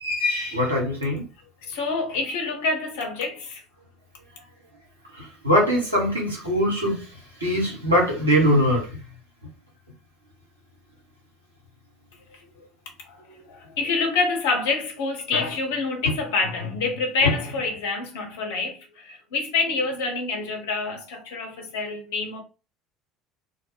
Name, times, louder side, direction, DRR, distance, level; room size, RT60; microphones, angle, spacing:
voice 1, 0.0-1.2 5.1-7.1 7.4-8.9, equal, 85° right, 0.9 m, -22 dB
voice 2, 1.7-3.6 13.0-22.4, left 3 dB, 65° left, 0.7 m, -27 dB
2.2 x 2.0 x 3.1 m
figure-of-eight pair, 60°, 0 cm